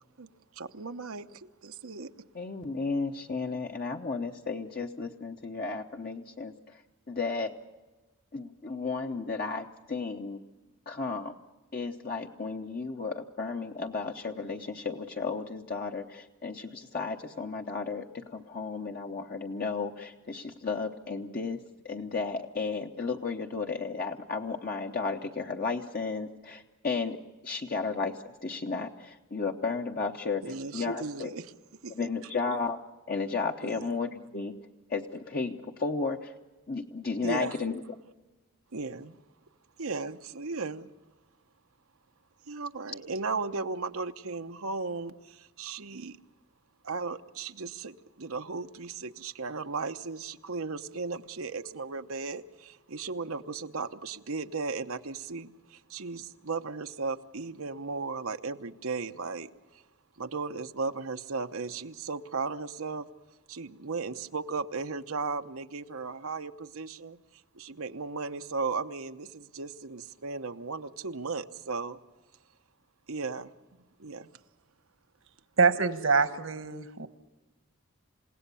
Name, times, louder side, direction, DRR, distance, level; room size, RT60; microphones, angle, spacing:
voice 1, 0.5-2.1 30.4-31.5 31.8-32.1 33.6-33.9 37.2-37.6 38.7-39.2 39.8-40.9 42.5-46.2 46.8-59.5 59.7-59.8 60.2-63.1 63.5-67.2 67.5-72.0 73.1-74.3, right 4 dB, 85° right, 7 dB, 1.0 m, -36 dB
voice 2, 2.3-6.8 7.1-7.5 8.3-10.4 10.9-11.3 11.7-27.2 27.4-31.3 31.9-32.8 33.1-34.5 34.9-36.3 36.7-37.8, left 4 dB, 45° left, 2 dB, 0.9 m, -33 dB
voice 3, 75.6-77.1, right 4 dB, 70° right, 11 dB, 1.4 m, -25 dB
28.5 x 17.0 x 7.0 m, 1.2 s
head